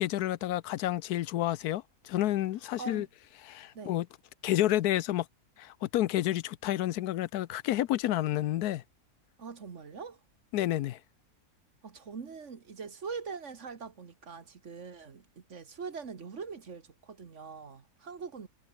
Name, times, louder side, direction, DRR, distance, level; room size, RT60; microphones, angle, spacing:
voice 1, 0.0-3.1 3.4-4.1 4.4-5.3 5.6-8.8 10.5-11.0, left 14 dB, 80° left, 1.1 m, -30 dB
voice 2, 9.4-10.2 11.8-18.5, right 5 dB, 50° right, 1.8 m, -43 dB
omnidirectional pair, 1.7 m